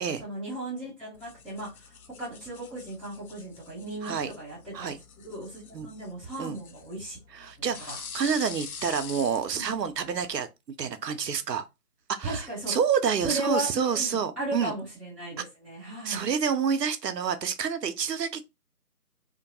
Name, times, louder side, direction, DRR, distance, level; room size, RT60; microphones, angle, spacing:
voice 1, 0.2-5.0 5.2-7.2 7.6-7.9 9.5-9.7 12.2-12.7 13.2-16.3, right 1 dB, ahead, 0.6 m, -36 dB
sound 1, 1.1-10.4, left 6 dB, 65° left, 0.5 m, -45 dB
voice 2, 4.0-4.3 4.7-5.0 5.7-5.9 6.4-6.6 7.3-10.5 10.8-11.7 12.1-14.7 16.0-18.4, right 6 dB, 85° right, 0.7 m, -28 dB
2.7 x 2.2 x 2.6 m
figure-of-eight pair, 175°, 48 cm